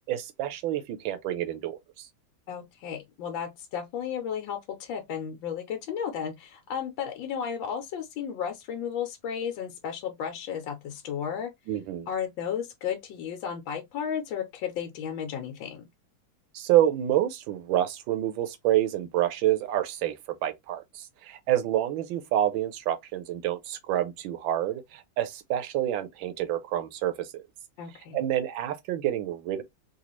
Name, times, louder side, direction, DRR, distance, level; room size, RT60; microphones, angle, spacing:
voice 1, 0.0-2.1 11.7-12.1 16.5-27.4 28.1-29.6, right 12 dB, 80° right, 1.4 m, -28 dB
voice 2, 2.5-11.5 12.1-15.9 27.8-28.2, left 8 dB, 80° left, 1.4 m, -34 dB
4.0 x 2.4 x 3.0 m
omnidirectional pair, 2.1 m